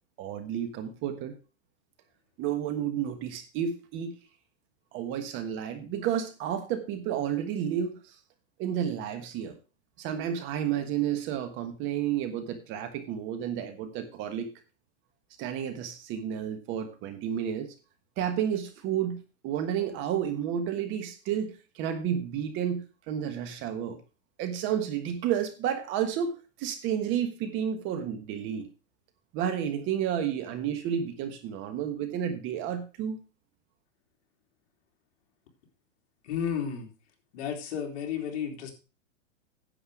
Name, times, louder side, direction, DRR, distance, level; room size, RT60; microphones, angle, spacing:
voice 1, 0.2-1.3 2.4-4.2 4.9-8.1 8.6-9.6 10.0-14.5 15.4-17.7 18.2-24.0 24.4-28.7 29.3-33.2, right 9 dB, 30° right, 9 dB, 1.3 m, -31 dB
voice 2, 36.2-36.9 37.3-38.7, left 8 dB, 55° left, 3 dB, 3.2 m, -32 dB
10.0 x 7.7 x 4.8 m, 0.32 s
supercardioid pair, 155°, 39 cm